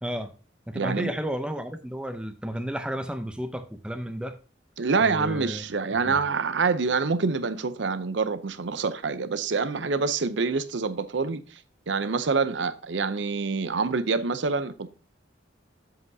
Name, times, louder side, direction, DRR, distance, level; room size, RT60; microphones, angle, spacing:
voice 1, 0.0-0.3 0.7-4.3 5.0-5.6 6.0-6.2, equal, 5° right, 0.6 m, -32 dB
voice 2, 0.7-1.1 4.8-11.6 11.9-14.9, right 4 dB, 70° right, 0.6 m, -26 dB
7.8 x 7.7 x 2.7 m
head